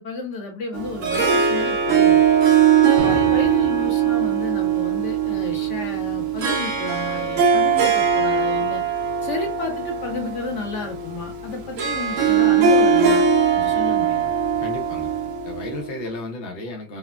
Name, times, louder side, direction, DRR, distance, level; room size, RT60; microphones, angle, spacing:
voice 1, 0.0-2.2 2.7-8.8 9.2-13.3 13.5-14.2, left 3 dB, 50° left, 1.1 m, -32 dB
Harp, 0.7-16.0, right 7 dB, 65° right, 0.8 m, -20 dB
sound 1, 3.0-4.0, right 4 dB, 85° right, 1.3 m, -31 dB
voice 2, 14.6-15.1 15.4-17.0, left 1 dB, 70° left, 0.5 m, -33 dB
3.4 x 2.0 x 2.3 m
omnidirectional pair, 1.9 m